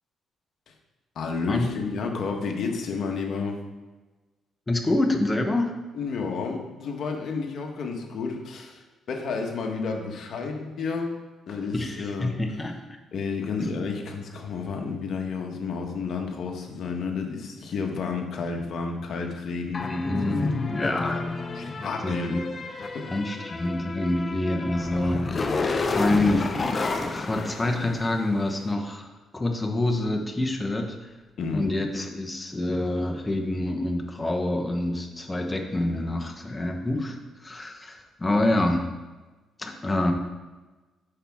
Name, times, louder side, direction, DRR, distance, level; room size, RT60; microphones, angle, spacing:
voice 1, 1.1-3.6 5.9-11.2 11.5-12.3 13.1-19.8 20.2-20.5 20.8-22.3 22.9-23.1 31.4-31.7, left 4 dB, 60° left, 2 dB, 1.3 m, -31 dB
voice 2, 4.7-5.7 11.7-12.8 13.6-13.7 19.8-21.2 22.0-22.5 23.1-30.9 31.5-38.8 39.6-40.1, left 1 dB, 20° left, 3 dB, 1.0 m, -27 dB
sound 1, 19.7-28.4, left 3 dB, 35° left, 0.6 m, -30 dB
8.4 x 5.9 x 3.6 m, 1.2 s
cardioid pair, 90°, 0 cm